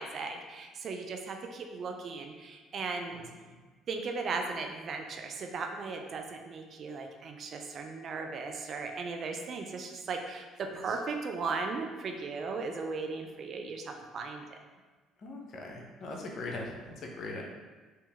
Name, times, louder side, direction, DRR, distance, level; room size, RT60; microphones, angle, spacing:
voice 1, 0.0-3.2 3.9-14.4, right 4 dB, 55° right, 4 dB, 0.5 m, -37 dB
voice 2, 15.2-17.4, left 2 dB, 55° left, 0 dB, 0.7 m, -40 dB
3.1 x 2.9 x 3.5 m, 1.3 s
hypercardioid pair, 65°, 0 cm